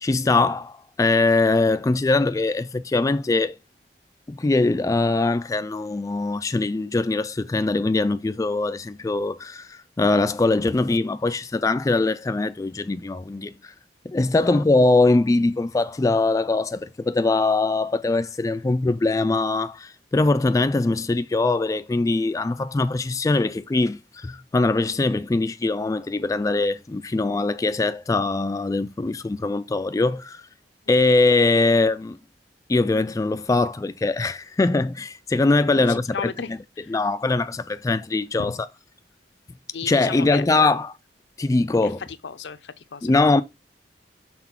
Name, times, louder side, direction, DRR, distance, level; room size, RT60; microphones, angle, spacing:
voice 1, 0.0-3.6 4.3-13.7 14.1-30.4 30.9-32.2 32.7-36.6 36.9-38.5 39.9-40.9 41.4-42.0 43.0-43.4, left 3 dB, 20° left, 0.3 m, -22 dB
voice 2, 35.7-37.0 38.4-38.6 39.7-40.4 41.8-41.9 42.2-43.1, left 5 dB, 80° left, 0.6 m, -35 dB
6.0 x 3.9 x 4.3 m
head